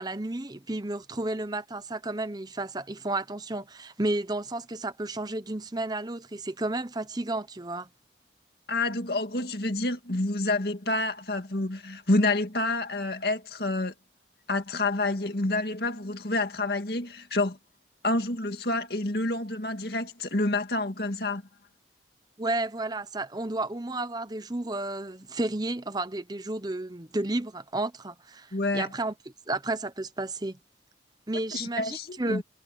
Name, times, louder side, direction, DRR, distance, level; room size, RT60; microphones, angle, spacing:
voice 1, 0.0-7.9 22.4-29.1 29.5-30.6 31.3-32.4, right 2 dB, 20° right, 0.9 m, -32 dB
voice 2, 8.7-13.9 14.5-17.6 18.0-21.4 28.5-28.9 31.5-32.4, left 2 dB, 60° left, 2.2 m, -28 dB
head